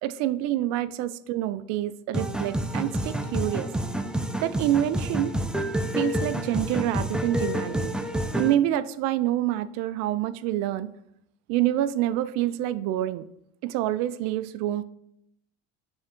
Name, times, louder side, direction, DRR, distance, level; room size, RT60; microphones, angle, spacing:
voice 1, 0.0-3.7 4.4-5.3 6.0-7.9 8.3-10.9 11.5-13.3 13.6-14.8, right 13 dB, 60° right, 16 dB, 0.4 m, -27 dB
sound 1, 2.1-8.5, equal, 5° right, 0.5 m, -28 dB
6.3 x 3.5 x 4.3 m, 0.77 s
hypercardioid pair, 80°, 30 cm